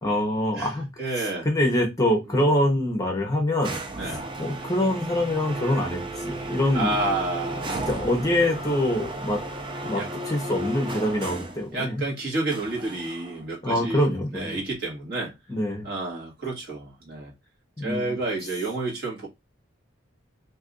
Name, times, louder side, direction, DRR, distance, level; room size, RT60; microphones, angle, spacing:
voice 1, 0.0-3.8 4.1-7.0 7.6-9.4 9.8-12.0 13.6-14.6 15.5-15.9 17.8-18.2, left 1 dB, 15° left, 0.7 m, -25 dB
voice 2, 1.0-1.5 2.3-2.4 4.0-4.2 6.7-7.9 9.9-10.1 11.7-15.3 15.8-17.3 17.8-19.3, right 2 dB, 50° right, 1.3 m, -30 dB
sound 1, 3.6-11.7 12.5-13.4, right 2 dB, 25° right, 0.4 m, -34 dB
2.7 x 2.4 x 3.7 m
head